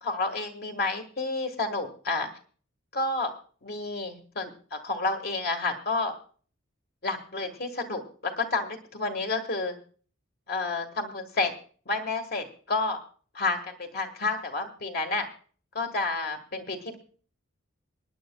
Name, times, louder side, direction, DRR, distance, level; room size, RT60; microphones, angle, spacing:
voice 1, 0.0-2.3 2.9-3.3 3.6-6.1 7.0-9.7 10.5-11.5 11.9-13.0 13.3-15.3 15.8-17.0, left 3 dB, 45° left, 6 dB, 1.6 m, -30 dB
25.5 x 10.0 x 2.3 m, 0.41 s
head